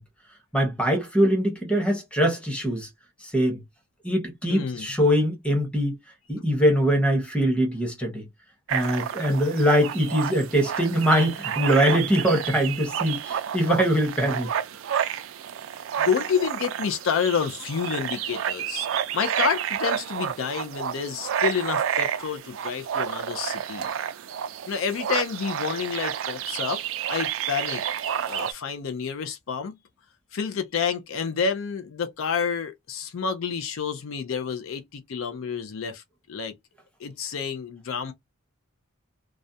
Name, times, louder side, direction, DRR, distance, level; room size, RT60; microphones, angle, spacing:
voice 1, 0.5-2.9 3.2-3.6 4.0-6.0 6.3-8.2 8.7-14.5, equal, 5° left, 0.8 m, -22 dB
voice 2, 4.5-4.9 16.0-18.9 19.1-23.9 24.7-26.8 27.1-29.7 30.3-36.0 36.3-36.5 37.0-38.1, left 6 dB, 65° left, 0.4 m, -29 dB
sound 1, 8.7-28.5, right 9 dB, 65° right, 0.3 m, -30 dB
2.4 x 2.1 x 2.6 m
head